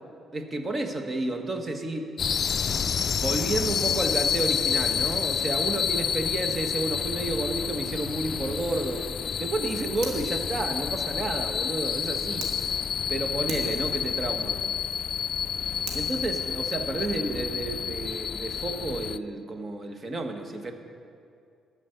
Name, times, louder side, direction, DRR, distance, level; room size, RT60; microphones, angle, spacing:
voice 1, 0.3-2.1 3.2-9.1 9.4-12.8 13.1-14.6 15.9-20.7, right 2 dB, 35° right, 5 dB, 1.4 m, -31 dB
sound 1, 2.2-19.2, left 7 dB, 50° left, 0.3 m, -29 dB
Fire, 10.0-12.5 13.0-13.1 13.5-16.0, right 3 dB, 85° right, 2.0 m, -43 dB
14.5 x 5.3 x 9.5 m, 2.4 s
cardioid pair, 90°, 0 cm